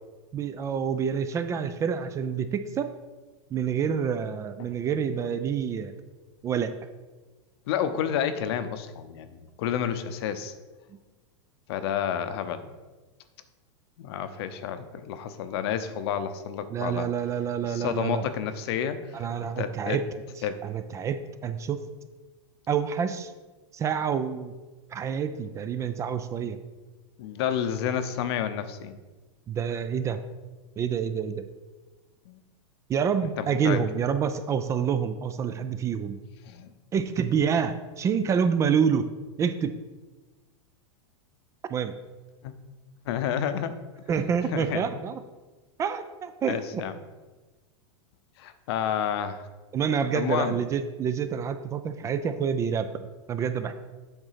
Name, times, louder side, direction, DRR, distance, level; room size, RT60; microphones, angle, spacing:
voice 1, 0.3-2.9 3.5-6.0 6.4-6.7 10.9-11.0 16.7-18.3 19.1-20.1 20.6-21.8 22.7-23.3 23.7-24.5 24.9-26.6 29.5-30.2 30.8-31.4 32.9-36.2 36.9-39.1 39.4-39.8 41.7-41.9 44.1-45.2 45.8-46.8 49.7-53.7, right 7 dB, 20° right, 10 dB, 0.3 m, -27 dB
voice 2, 7.7-10.5 11.7-12.7 14.0-17.1 17.6-19.3 19.6-20.0 20.4-20.6 27.2-29.0 32.3-32.4 33.4-33.8 36.4-36.7 42.4-42.5 43.0-43.7 44.5-44.8 46.5-47.0 48.4-49.4 50.1-50.6, left 9 dB, 60° left, 11 dB, 0.7 m, -30 dB
7.9 x 3.7 x 5.8 m, 1.3 s
supercardioid pair, 135°, 15 cm